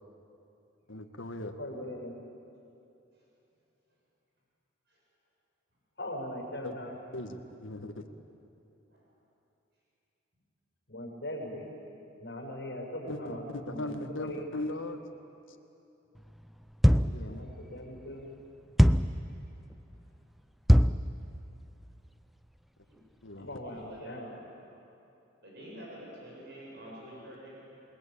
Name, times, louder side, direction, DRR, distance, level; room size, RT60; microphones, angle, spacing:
voice 1, 0.9-1.5 6.6-6.7 7.1-8.0 13.1-15.0 16.9-17.4 23.2-23.6, left 1 dB, 75° left, 6 dB, 1.8 m, -38 dB
voice 2, 1.6-2.1 6.0-6.9 10.9-11.7 12.2-13.4 13.7-14.4 17.1-18.3 23.3-24.4, left 1 dB, 55° left, 0 dB, 6.5 m, -40 dB
sound 1, 16.8-17.3 18.8-19.2 20.7-21.1, equal, ahead, 0.5 m, -21 dB
voice 3, 23.6-24.2 24.7-24.8 25.4-27.6, equal, 55° right, -4 dB, 7.5 m, -48 dB
28.5 x 20.5 x 8.9 m, 2.8 s
head